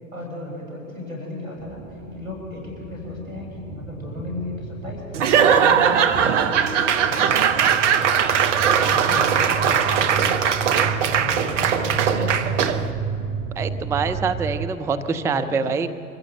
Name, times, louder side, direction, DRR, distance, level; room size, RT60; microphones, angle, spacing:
voice 1, 0.1-6.5 7.0-7.6 7.9-10.3 10.6-12.9 14.9-15.9, left 2 dB, 85° right, 0 dB, 6.8 m, -35 dB
sound 1, 1.6-14.7, right 5 dB, 45° right, 1.6 m, -32 dB
Laughter / Applause / Crowd, 5.1-12.9, right 7 dB, 60° right, 1.2 m, -19 dB
voice 2, 13.6-15.9, right 5 dB, 5° right, 9 dB, 0.5 m, -25 dB
24.5 x 14.5 x 7.9 m, 2.6 s
figure-of-eight pair, 90°, 40 cm